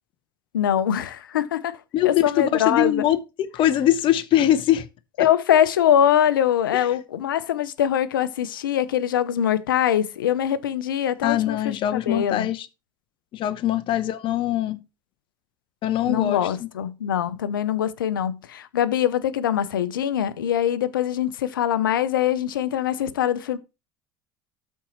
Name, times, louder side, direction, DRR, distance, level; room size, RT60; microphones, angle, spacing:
voice 1, 0.5-1.8 2.0-3.0 5.2-11.8 12.1-12.5 16.0-23.6, left 10 dB, 85° left, 0.7 m, -23 dB
voice 2, 1.9-4.9 5.2-5.3 6.7-6.9 11.2-12.7 13.3-14.8 15.8-16.7, left 12 dB, 50° left, 0.8 m, -22 dB
13.0 x 4.4 x 3.0 m
hypercardioid pair, 75°, 11 cm